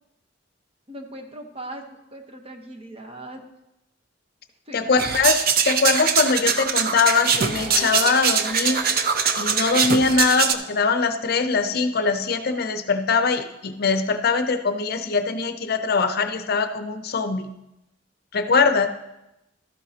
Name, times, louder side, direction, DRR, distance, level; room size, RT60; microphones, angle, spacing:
voice 1, 0.9-3.4 4.7-5.2, right 1 dB, 30° right, 4 dB, 1.0 m, -39 dB
voice 2, 4.7-8.9 9.4-17.5 18.3-18.9, left 4 dB, 55° left, 9 dB, 0.6 m, -22 dB
sound 1, 5.0-10.5, right 6 dB, 55° right, 0.6 m, -22 dB
sound 2, 7.6-13.4 14.5-14.6, left 2 dB, 10° right, 1.8 m, -43 dB
12.5 x 9.1 x 2.8 m, 0.91 s
head